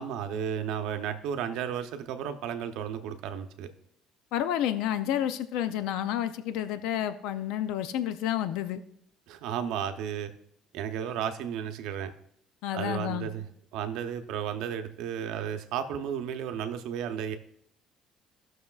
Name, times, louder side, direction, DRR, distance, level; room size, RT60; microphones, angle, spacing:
voice 1, 0.0-3.7 9.3-10.3 10.7-12.1 12.7-13.4 13.7-17.3, right 8 dB, 75° right, 8 dB, 0.7 m, -33 dB
voice 2, 4.3-8.8 12.6-13.3, left 11 dB, 80° left, 11 dB, 0.4 m, -30 dB
15.5 x 6.3 x 2.4 m, 0.69 s
cardioid pair, 170°, 0 cm